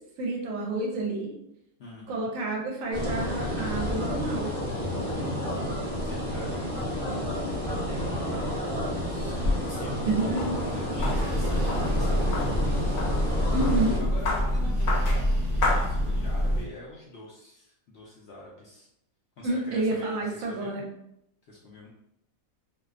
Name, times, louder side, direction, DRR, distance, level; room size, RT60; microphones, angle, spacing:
voice 1, 0.2-1.3 2.1-4.5 7.9-8.2 10.0-10.7 13.5-14.0 19.4-20.9, right 2 dB, 70° right, 0 dB, 0.9 m, -29 dB
voice 2, 1.8-2.3 5.3-6.8 8.8-12.6 14.0-18.9 19.4-20.8 21.5-21.9, left 2 dB, 65° left, -5 dB, 0.6 m, -45 dB
sound 1, 2.9-14.0, equal, 25° right, 0.9 m, -30 dB
Knife cutting, 9.0-16.5, left 2 dB, 80° left, 1.1 m, -34 dB
sound 2, 11.0-16.6, equal, 50° right, 0.6 m, -26 dB
2.5 x 2.2 x 2.4 m, 0.81 s
omnidirectional pair, 1.5 m